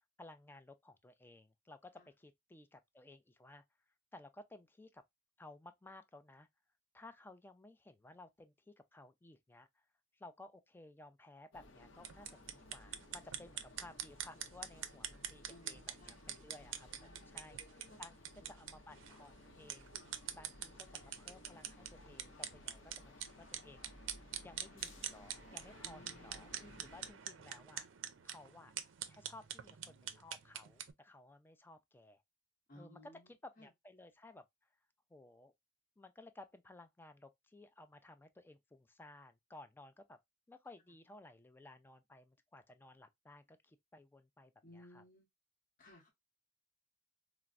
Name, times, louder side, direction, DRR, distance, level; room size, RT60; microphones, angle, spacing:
voice 1, 0.2-3.6 4.1-5.0 5.4-6.5 6.9-9.8 10.1-20.0 20.3-23.9 24.4-27.9 28.2-28.7 29.1-32.2 32.7-34.4 35.1-35.5 36.0-40.2 40.5-45.0, left 2 dB, 10° left, 0.3 m, -57 dB
sound 1, 11.5-27.1, left 1 dB, 85° left, 0.6 m, -58 dB
sound 2, 12.0-30.9, right 10 dB, 80° right, 0.4 m, -46 dB
voice 2, 15.5-16.3 17.0-17.4 17.9-18.0 18.4-18.5 19.1-19.2 25.8-26.7 32.7-33.3 33.6-33.7 44.6-45.2 45.8-46.1, left 1 dB, 50° left, 0.9 m, -59 dB
4.2 x 2.0 x 2.3 m
head